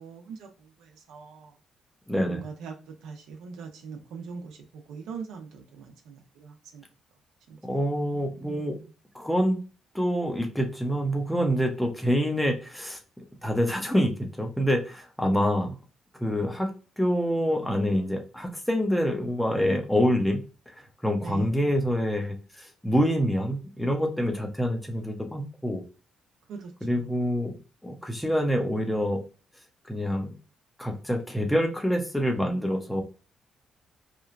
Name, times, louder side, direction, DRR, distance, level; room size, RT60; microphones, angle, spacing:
voice 1, 0.0-1.6 2.2-6.8 7.5-7.6 8.1-8.9 21.2-21.5 26.5-27.3, right 5 dB, 90° right, 0.7 m, -42 dB
voice 2, 2.1-2.4 7.6-8.8 9.1-9.6 9.9-15.8 16.2-20.4 20.7-25.8 26.8-27.6 27.8-29.2 29.8-30.3 30.8-33.0, equal, 5° left, 0.7 m, -26 dB
3.0 x 2.2 x 2.4 m
cardioid pair, 90°, 0 cm